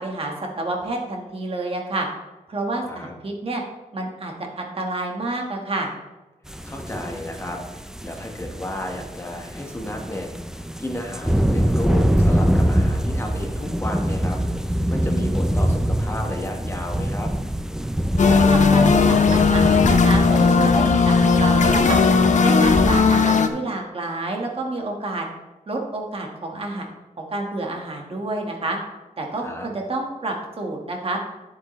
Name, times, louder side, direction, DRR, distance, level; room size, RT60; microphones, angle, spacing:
voice 1, 0.0-2.1 2.5-3.6 3.9-5.9 18.3-22.0 22.4-25.3 25.7-26.8 27.2-28.8 29.2-31.2, right 2 dB, 45° right, 1 dB, 1.5 m, -29 dB
sound 1, 6.5-23.0, equal, 5° right, 0.4 m, -24 dB
voice 2, 6.6-10.3 10.8-14.4 14.9-17.3 29.4-29.7, left 1 dB, 20° left, 1 dB, 1.3 m, -32 dB
sound 2, 18.2-23.5, left 5 dB, 60° left, 0.7 m, -16 dB
9.4 x 8.2 x 3.1 m, 1.1 s
wide cardioid pair, 155°, 14 cm